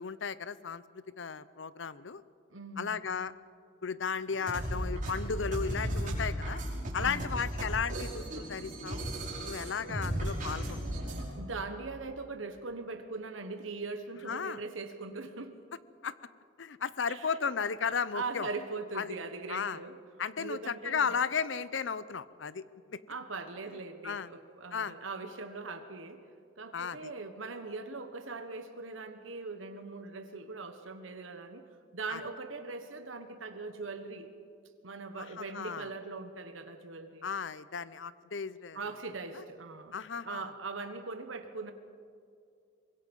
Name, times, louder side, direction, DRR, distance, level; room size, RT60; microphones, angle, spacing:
voice 1, 0.0-2.2 2.8-3.3 3.8-6.6 6.9-9.1 9.4-10.8 14.3-14.6 16.0-16.1 16.6-18.5 18.9-19.1 19.5-19.8 20.2-23.0 24.0-24.3 24.7-24.9 26.7-27.1 32.1-32.2 35.2-35.9 37.2-38.8 39.3-39.4 39.9-40.5, left 6 dB, 70° left, 17 dB, 0.7 m, -35 dB
voice 2, 2.5-3.0 6.9-7.5 11.4-15.6 17.1-17.5 17.8-19.9 20.4-21.1 23.1-26.2 26.6-31.7 31.9-34.3 34.8-37.3 38.7-40.0 40.2-41.7, right 3 dB, 85° right, 7 dB, 1.3 m, -41 dB
sound 1, 4.3-11.2, right 1 dB, 45° right, 5.7 m, -35 dB
24.0 x 21.5 x 5.4 m, 2.3 s
head